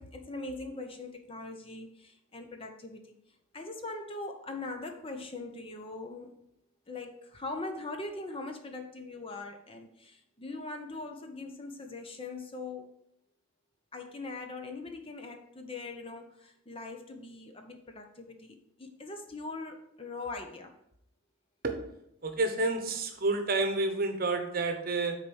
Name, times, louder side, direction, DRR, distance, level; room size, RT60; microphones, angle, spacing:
voice 1, 0.0-6.4 6.9-12.9 13.9-20.7, left 3 dB, 25° left, 5 dB, 0.7 m, -41 dB
voice 2, 22.2-25.2, right 2 dB, 45° right, 6 dB, 0.9 m, -29 dB
6.6 x 4.2 x 6.2 m, 0.77 s
head